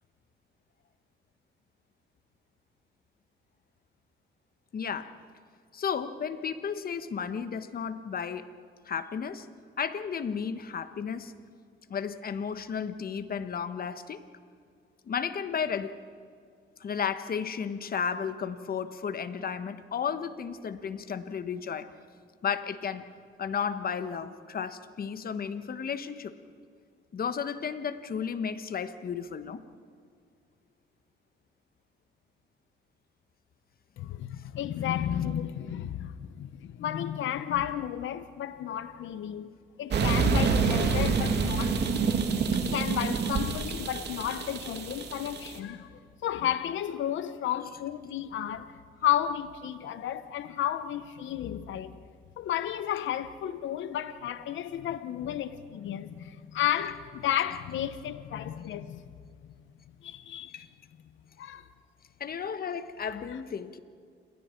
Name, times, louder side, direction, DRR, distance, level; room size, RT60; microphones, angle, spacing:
voice 1, 4.7-5.1 5.7-8.5 8.8-9.5 9.8-11.3 11.9-14.2 15.1-16.0 16.8-21.9 22.4-23.1 23.4-26.3 27.1-29.6 42.5-42.6 60.5-60.7 62.2-63.8, left 7 dB, 50° left, 1.3 m, -33 dB
voice 2, 34.0-39.5 39.8-42.1 42.5-52.0 52.4-59.0 60.0-60.7 61.4-61.7 63.3-63.4, left 11 dB, 75° left, 0.9 m, -33 dB
sound 1, 39.9-45.6, right 5 dB, 60° right, 2.4 m, -27 dB
29.0 x 22.0 x 4.6 m
cardioid pair, 90°, 20 cm